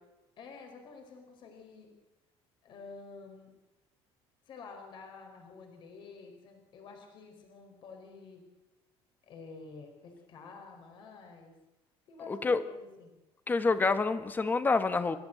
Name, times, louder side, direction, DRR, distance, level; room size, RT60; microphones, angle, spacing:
voice 1, 0.4-1.9 2.6-3.5 4.5-8.4 9.2-11.5 12.1-13.2, left 4 dB, 50° left, 3 dB, 4.4 m, -49 dB
voice 2, 12.3-12.6 13.5-15.2, left 4 dB, 15° left, 10 dB, 1.4 m, -27 dB
30.0 x 13.0 x 8.0 m, 1.0 s
cardioid pair, 150°, 11 cm